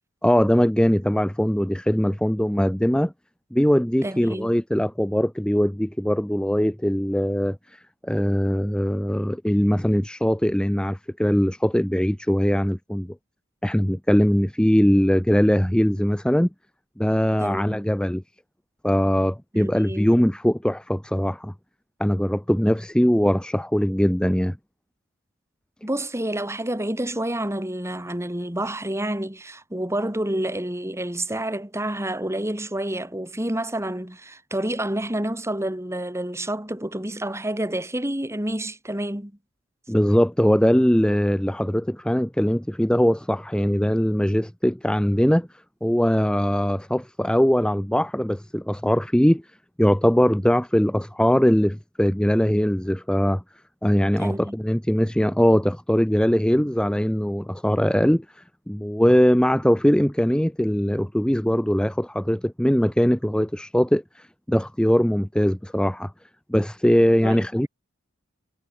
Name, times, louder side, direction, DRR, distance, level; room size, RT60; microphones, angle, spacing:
voice 1, 0.2-3.1 3.5-13.2 13.6-16.5 17.0-18.2 18.8-21.5 22.0-24.6 39.9-45.5 45.8-49.4 49.8-53.4 53.8-66.1 66.5-67.7, equal, 5° left, 0.7 m, -21 dB
voice 2, 4.0-4.5 17.4-17.9 19.5-20.2 25.8-39.3 54.2-54.6 67.2-67.7, right 1 dB, 15° right, 2.7 m, -29 dB
head